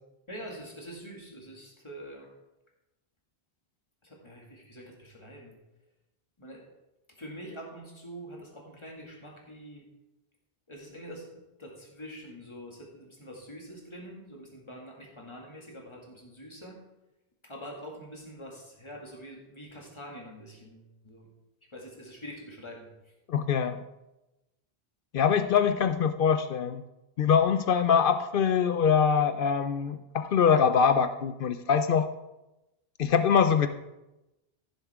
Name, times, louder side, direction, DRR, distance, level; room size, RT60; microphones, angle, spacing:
voice 1, 0.3-2.3 4.0-5.6 6.4-6.6 7.2-9.8 10.7-16.8 17.4-21.3 21.7-23.1, equal, 25° left, -1 dB, 2.1 m, -45 dB
voice 2, 23.3-23.8 25.1-26.8 27.2-32.1 33.0-33.7, left 7 dB, 60° left, 10 dB, 0.7 m, -23 dB
15.0 x 7.2 x 3.5 m, 0.97 s
omnidirectional pair, 1.1 m